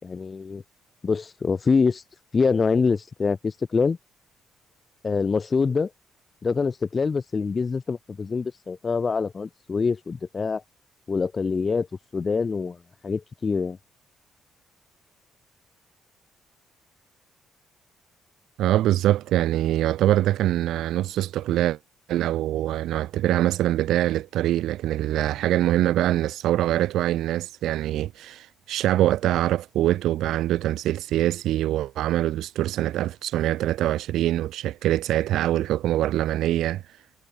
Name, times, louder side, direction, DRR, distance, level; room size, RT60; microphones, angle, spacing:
voice 1, 0.0-0.6 1.0-2.0 2.3-4.0 5.0-5.9 6.4-10.6 11.1-11.9 12.1-13.8, left 5 dB, 35° left, 5.9 m, -25 dB
voice 2, 18.6-21.8 22.1-37.0, right 13 dB, 85° right, 4.4 m, -24 dB
cardioid pair, 90°, 0 cm